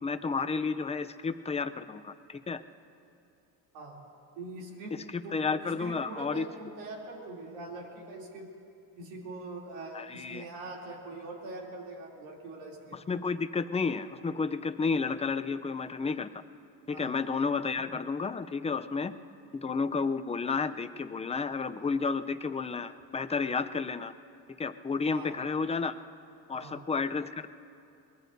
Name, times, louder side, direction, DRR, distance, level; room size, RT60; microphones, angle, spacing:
voice 1, 0.0-2.6 4.9-6.4 9.9-10.4 12.9-16.3 16.9-19.1 19.5-24.1 24.6-25.9 26.5-27.5, left 4 dB, 15° left, 10 dB, 0.5 m, -31 dB
voice 2, 4.3-5.0 5.2-8.5 9.0-13.0 16.9-17.1 25.1-25.4 26.5-26.8, right 2 dB, 90° right, -2 dB, 3.2 m, -43 dB
23.5 x 20.5 x 2.7 m, 2.5 s
supercardioid pair, 90°, 43 cm